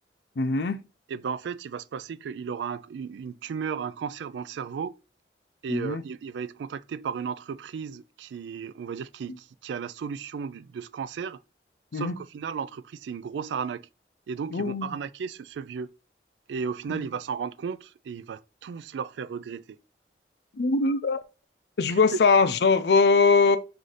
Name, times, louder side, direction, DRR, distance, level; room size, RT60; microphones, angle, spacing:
voice 1, 0.4-0.9 5.7-6.0 11.9-12.1 14.5-14.9 16.9-17.0 20.6-21.2 21.8-23.6, left 4 dB, 70° left, 0.5 m, -22 dB
voice 2, 1.1-5.0 5.6-11.4 11.9-13.9 14.3-15.9 16.5-19.8 21.9-22.2, right 6 dB, 85° right, 0.3 m, -34 dB
3.9 x 2.6 x 4.8 m
head